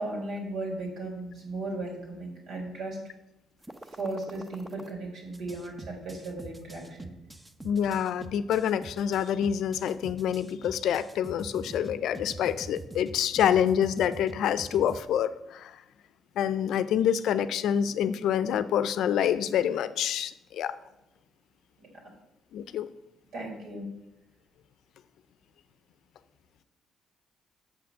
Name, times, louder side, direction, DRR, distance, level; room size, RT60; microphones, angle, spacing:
voice 1, 0.0-3.0 3.9-7.1 21.8-21.9 23.3-23.9, right 2 dB, 75° right, -1 dB, 3.6 m, -36 dB
sound 1, 3.6-4.9 5.3-15.0, right 2 dB, 15° right, 0.8 m, -44 dB
voice 2, 7.6-15.8 16.4-20.7 22.5-22.9, left 9 dB, 80° left, 14 dB, 0.5 m, -27 dB
6.9 x 6.1 x 7.1 m, 0.89 s
cardioid pair, 90°, 0 cm